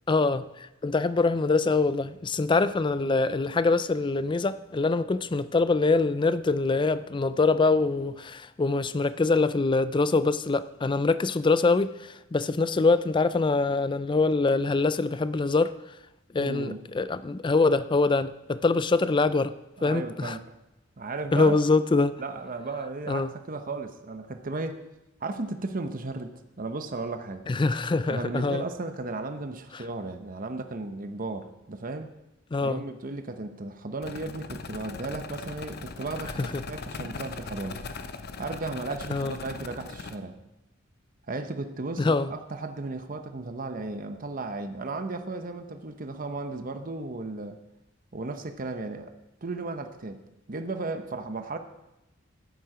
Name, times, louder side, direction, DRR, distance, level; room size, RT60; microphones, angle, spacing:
voice 1, 0.1-15.7 16.3-19.6 19.8-20.4 21.3-22.1 23.1-23.3 27.5-28.6 29.7-29.8 32.5-32.8 36.4-36.6 39.1-39.4 42.0-42.3, left 3 dB, 25° left, 0.4 m, -24 dB
voice 2, 16.4-16.8 19.8-20.5 21.0-21.6 22.2-24.8 25.2-27.5 28.1-32.1 32.6-37.8 38.4-40.4 41.3-47.6 48.1-49.1 49.4-50.2 50.5-51.6, right 3 dB, 45° right, 0.9 m, -35 dB
sound 1, 34.0-40.1, left 4 dB, 55° left, 0.7 m, -39 dB
13.5 x 9.3 x 5.0 m
head